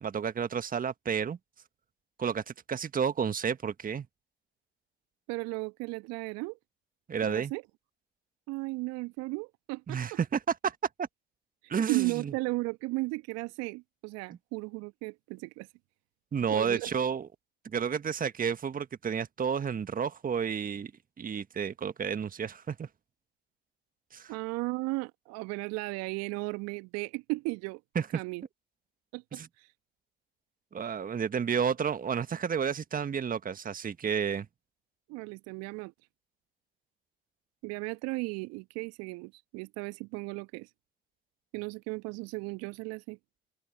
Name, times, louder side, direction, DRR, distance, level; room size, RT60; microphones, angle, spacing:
voice 1, 0.0-1.4 2.2-4.1 7.1-7.5 9.9-10.7 11.7-12.3 16.3-17.3 17.6-20.9 21.2-22.9 24.1-24.3 27.9-28.2 29.3-29.5 30.7-34.5, right 7 dB, 30° right, 1.7 m, -31 dB
voice 2, 5.3-6.6 7.2-7.6 8.5-10.2 11.9-15.7 16.5-16.9 24.3-27.8 28.1-28.4 29.1-29.7 35.1-35.9 37.6-40.7 41.5-43.2, right 25 dB, 60° right, 1.5 m, -35 dB
open air
figure-of-eight pair, 60°, 29 cm